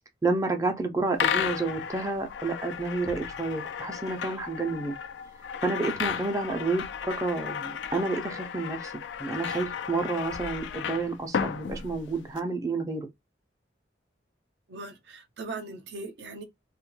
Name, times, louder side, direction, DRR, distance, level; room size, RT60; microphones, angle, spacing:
voice 1, 0.2-4.9 5.6-8.9 9.2-13.1, right 3 dB, 20° right, 0.4 m, -30 dB
sound 1, 1.2-12.4, left 7 dB, 85° left, 0.3 m, -34 dB
voice 2, 14.7-16.4, right 3 dB, 75° right, 0.5 m, -39 dB
2.1 x 2.1 x 3.0 m
head